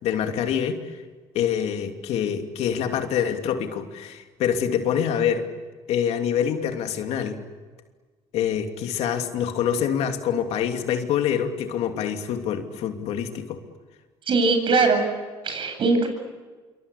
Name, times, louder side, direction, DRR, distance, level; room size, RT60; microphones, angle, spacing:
voice 1, 0.0-0.9 1.3-5.5 5.9-7.4 8.3-13.6, left 8 dB, 70° left, 5 dB, 2.9 m, -25 dB
voice 2, 14.3-15.0 15.4-16.1, right 3 dB, 50° right, 6 dB, 8.0 m, -20 dB
27.5 x 24.5 x 8.5 m, 1.4 s
supercardioid pair, 90°, 11 cm